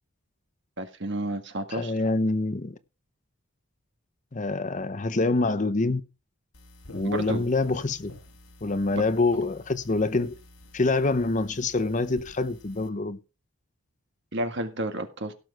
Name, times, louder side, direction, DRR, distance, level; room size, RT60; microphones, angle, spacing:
voice 1, 0.8-1.9 7.0-7.5 8.9-9.0 14.3-15.3, right 1 dB, 55° right, 1.8 m, -31 dB
voice 2, 1.7-2.8 4.3-6.0 6.9-8.1 8.6-10.3 10.7-13.2, left 3 dB, 35° left, 0.7 m, -26 dB
sound 1, 6.5-12.9, left 2 dB, 75° left, 2.0 m, -49 dB
17.0 x 6.3 x 4.6 m
head